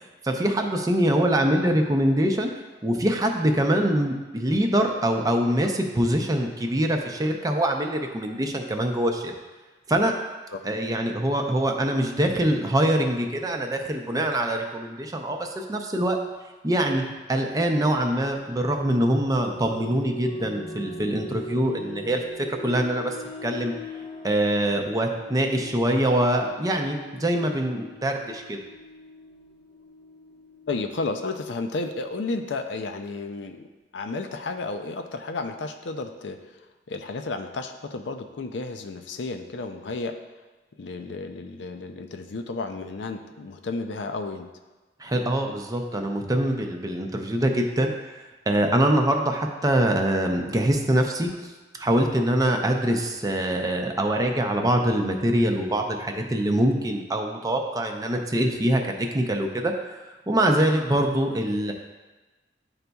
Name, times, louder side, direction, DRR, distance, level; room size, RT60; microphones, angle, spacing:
voice 1, 0.2-2.5 2.8-9.3 9.9-10.1 10.6-16.2 16.6-22.2 22.5-23.2 23.4-23.7 24.2-28.6 45.0-48.1 48.5-51.5 51.8-60.0 60.3-61.7, right 1 dB, 20° right, 3 dB, 0.5 m, -24 dB
sound 1, 18.3-30.9, equal, 30° left, 0.6 m, -41 dB
voice 2, 30.7-36.4 36.9-40.1 40.8-44.5, left 3 dB, 85° left, 6 dB, 0.5 m, -32 dB
10.5 x 4.0 x 2.3 m, 1.2 s
head